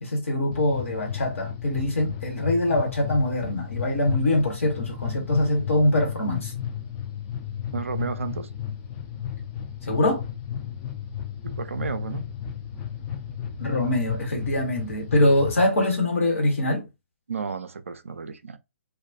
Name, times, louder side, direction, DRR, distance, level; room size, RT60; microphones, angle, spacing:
voice 1, 0.0-6.5 9.8-10.2 13.6-16.8, left 1 dB, 75° left, 1.0 m, -23 dB
sound 1, 0.5-15.6, left 9 dB, 25° left, 0.4 m, -34 dB
voice 2, 7.7-8.5 11.4-12.3 17.3-18.6, right 5 dB, 80° right, 0.4 m, -32 dB
2.3 x 2.2 x 2.5 m
figure-of-eight pair, 130°, 7 cm